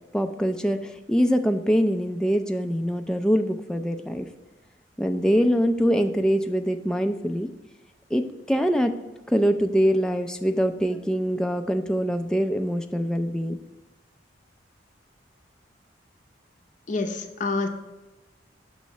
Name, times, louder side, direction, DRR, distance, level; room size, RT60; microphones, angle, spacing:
voice 1, 0.1-4.3 5.0-7.5 8.1-8.2 8.5-8.9 9.3-13.6, equal, 5° left, 6 dB, 0.3 m, -23 dB
voice 2, 16.9-17.7, left 3 dB, 45° left, 5 dB, 0.6 m, -27 dB
6.3 x 3.1 x 5.6 m, 1.1 s
head